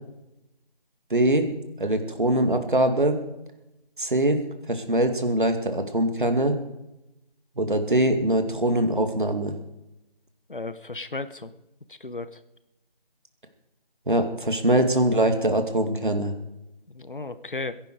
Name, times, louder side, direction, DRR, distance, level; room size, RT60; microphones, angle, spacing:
voice 1, 1.1-1.5 1.8-3.2 4.0-4.4 4.7-6.5 7.6-9.5 14.1-16.3, right 1 dB, 55° right, 6 dB, 2.4 m, -22 dB
voice 2, 10.5-11.5 11.9-12.4 16.9-17.7, left 3 dB, 60° left, 13 dB, 1.2 m, -34 dB
22.0 x 11.0 x 4.9 m, 0.93 s
figure-of-eight pair, 170°, 29 cm